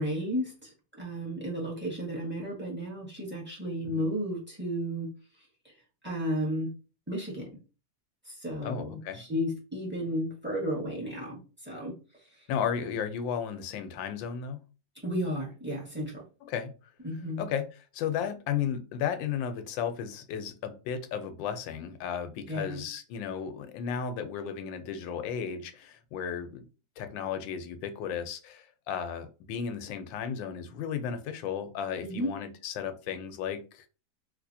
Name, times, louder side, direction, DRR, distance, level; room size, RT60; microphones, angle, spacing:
voice 1, 0.0-5.1 6.0-6.7 7.1-7.5 8.2-11.9 15.0-16.2 17.0-17.5 22.5-22.8 32.0-32.3, equal, 5° right, 1.2 m, -33 dB
voice 2, 8.6-9.2 12.5-14.6 16.4-16.7 17.4-26.6 27.0-33.9, left 8 dB, 85° left, 1.4 m, -34 dB
3.3 x 3.0 x 2.6 m
omnidirectional pair, 2.0 m